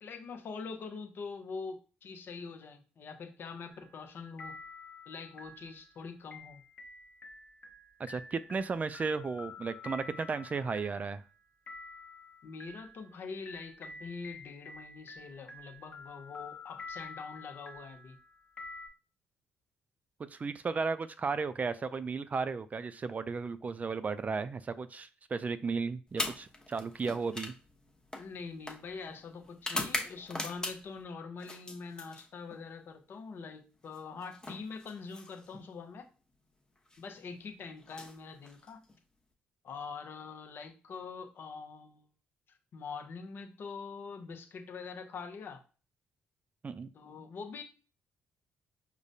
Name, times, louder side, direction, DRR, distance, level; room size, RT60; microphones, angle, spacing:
voice 1, 0.0-4.6 5.1-6.6 12.4-18.2 28.2-36.1 37.0-38.8 39.6-42.1 42.7-45.6 46.9-47.6, left 5 dB, 60° left, 6 dB, 0.7 m, -44 dB
sound 1, 3.7-4.1 4.4-18.9, left 3 dB, 40° left, 1.1 m, -49 dB
voice 2, 8.0-11.2 20.3-27.5 46.6-46.9, right 4 dB, 35° right, 13 dB, 0.3 m, -34 dB
sound 2, 26.1-31.0 31.4-32.6 33.9-35.7 36.8-37.0 37.8-39.0, left 2 dB, 20° left, 0.9 m, -41 dB
4.8 x 2.1 x 2.6 m, 0.36 s
supercardioid pair, 55°, 4 cm